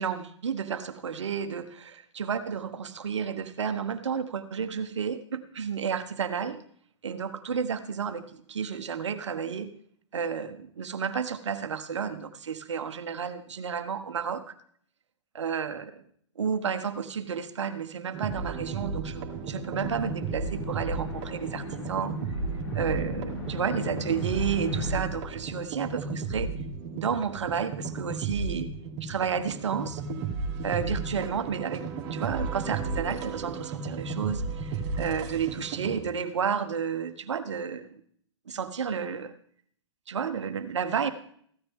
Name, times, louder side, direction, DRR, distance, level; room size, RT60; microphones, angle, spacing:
voice 1, 0.0-6.6 7.0-9.7 10.1-14.5 15.3-16.0 16.4-22.1 22.7-26.5 26.9-28.7 29.0-30.0 30.6-38.0 38.5-39.3 40.1-41.1, right 7 dB, 70° right, 10 dB, 1.3 m, -31 dB
sound 1, 18.1-36.0, right 4 dB, 40° right, 2.6 m, -34 dB
sound 2, 19.7-25.0, left 3 dB, 60° left, 3.6 m, -39 dB
15.5 x 13.0 x 3.7 m, 0.62 s
figure-of-eight pair, 110°, 15 cm